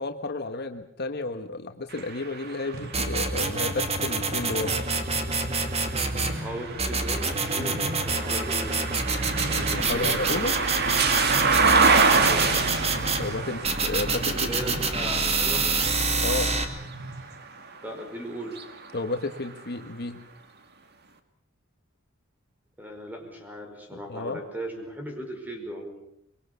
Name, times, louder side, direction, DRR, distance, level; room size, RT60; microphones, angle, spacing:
voice 1, 0.0-4.8 7.6-7.8 9.5-10.5 13.2-14.8 16.2-16.5 18.9-20.2 23.9-24.4, left 2 dB, 50° left, 6 dB, 1.5 m, -32 dB
sound 1, 1.9-17.8 18.4-19.6, right 4 dB, 55° right, 2.1 m, -28 dB
sound 2, 2.7-17.4, right 1 dB, 75° right, 3.8 m, -39 dB
sound 3, 2.9-6.4 6.8-13.2 13.6-16.6, right 3 dB, 30° right, 2.4 m, -27 dB
voice 2, 6.4-8.9 9.8-10.7 12.1-12.5 14.1-15.7 17.8-18.7 22.8-26.0, equal, 10° right, 3 dB, 5.3 m, -37 dB
24.5 x 23.5 x 6.9 m, 0.71 s
head